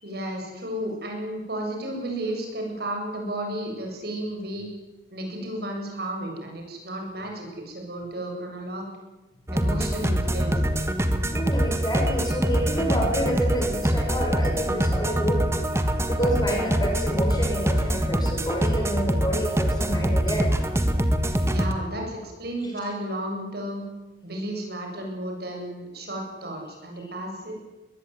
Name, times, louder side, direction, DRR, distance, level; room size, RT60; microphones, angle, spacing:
voice 1, 0.0-4.7 5.1-8.9 9.5-10.9 21.5-23.8 24.2-27.6, right 1 dB, 55° right, 1 dB, 7.9 m, -33 dB
sound 1, 9.5-21.7, equal, 15° right, 1.7 m, -24 dB
voice 2, 11.3-15.5 16.1-20.6 21.3-21.5, equal, 20° left, 1 dB, 6.2 m, -28 dB
22.5 x 20.5 x 9.6 m, 1.1 s
head